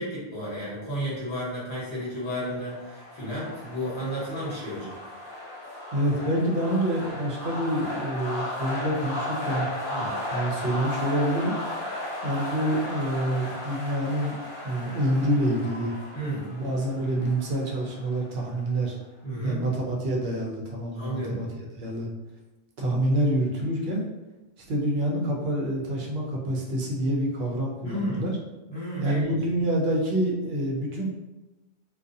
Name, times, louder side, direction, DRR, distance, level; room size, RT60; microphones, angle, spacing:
voice 1, 0.0-4.9 9.9-10.1 16.1-16.5 19.2-19.6 20.9-21.4 27.8-28.2 28.7-29.4, equal, 25° left, -9 dB, 1.1 m, -32 dB
sound 1, 2.2-18.8, left 1 dB, 60° left, 0.7 m, -35 dB
voice 2, 5.9-9.7 10.3-11.6 12.2-14.3 14.6-15.9 16.5-19.0 19.4-21.5 21.8-22.1 22.8-24.0 24.7-28.4 29.0-31.1, right 1 dB, 75° right, -1 dB, 0.9 m, -27 dB
2.4 x 2.2 x 2.6 m, 1.0 s
omnidirectional pair, 1.0 m